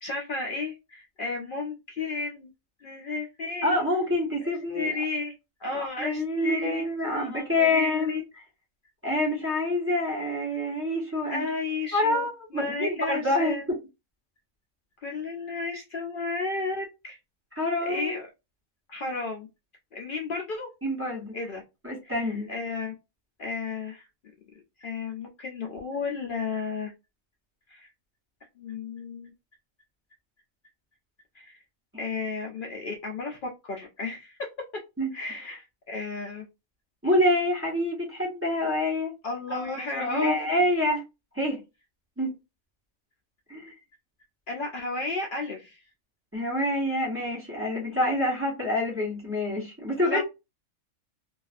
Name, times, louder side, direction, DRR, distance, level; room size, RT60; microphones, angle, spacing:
voice 1, 0.0-2.5 2.8-3.8 4.7-5.3 5.6-6.9 7.1-8.2 11.3-12.3 12.5-13.6 15.0-17.2 17.9-18.3 18.9-19.5 19.9-20.7 21.3-21.6 22.0-22.9 23.4-24.1 24.8-26.9 27.7-27.9 28.6-29.3 31.3-31.6 32.0-34.4 35.1-36.5 39.2-40.6 44.5-45.8 50.0-50.2, left 3 dB, 85° left, 0.4 m, -33 dB
voice 2, 3.6-4.9 5.7-8.2 9.0-11.5 11.9-13.6 17.6-18.1 20.8-21.4 21.8-22.5 35.0-35.1 37.0-39.1 39.5-41.0 41.3-41.6 42.2-42.3 43.5-43.7 46.3-50.2, left 1 dB, 15° right, 0.6 m, -27 dB
2.4 x 2.3 x 2.4 m
omnidirectional pair, 1.5 m